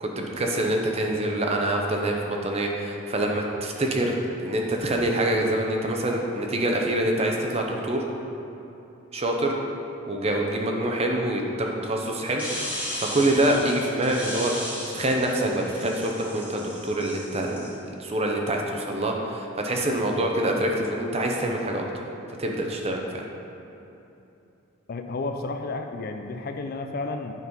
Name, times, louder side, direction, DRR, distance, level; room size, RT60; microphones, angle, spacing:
voice 1, 0.0-8.0 9.1-9.5 10.1-14.5 14.9-21.9 22.4-23.3, right 1 dB, 30° right, 1 dB, 0.7 m, -26 dB
sound 1, 12.4-17.7, equal, 5° right, 1.4 m, -36 dB
voice 2, 24.9-27.3, left 3 dB, 45° left, 6 dB, 0.4 m, -32 dB
9.4 x 4.0 x 5.4 m, 2.9 s
head